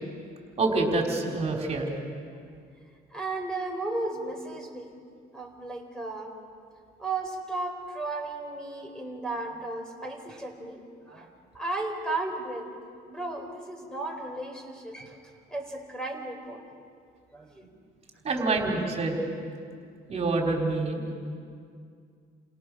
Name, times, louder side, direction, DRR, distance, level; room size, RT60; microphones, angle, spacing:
voice 1, 0.6-1.9 18.2-19.2 20.1-21.1, right 3 dB, 40° right, 1 dB, 4.2 m, -26 dB
voice 2, 3.1-4.9 5.3-6.3 7.0-10.8 11.1-11.3 11.5-12.7 13.0-15.2 15.5-16.6 17.3-17.8, right 2 dB, 5° left, 3 dB, 4.3 m, -34 dB
30.0 x 27.5 x 6.3 m, 2.2 s
cardioid pair, 110°, 17 cm